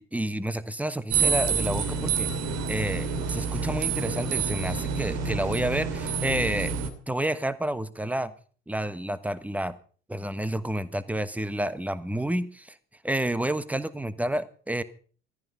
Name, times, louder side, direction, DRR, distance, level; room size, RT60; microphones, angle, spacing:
voice 1, 0.0-2.3 2.7-6.7 7.1-8.3 8.7-9.7 10.1-12.8 13.0-14.8, right 1 dB, 5° right, 15 dB, 1.2 m, -30 dB
sound 1, 1.1-6.9, right 5 dB, 55° right, 2.6 m, -28 dB
17.0 x 14.5 x 5.5 m, 0.43 s
figure-of-eight pair, 65°, 32 cm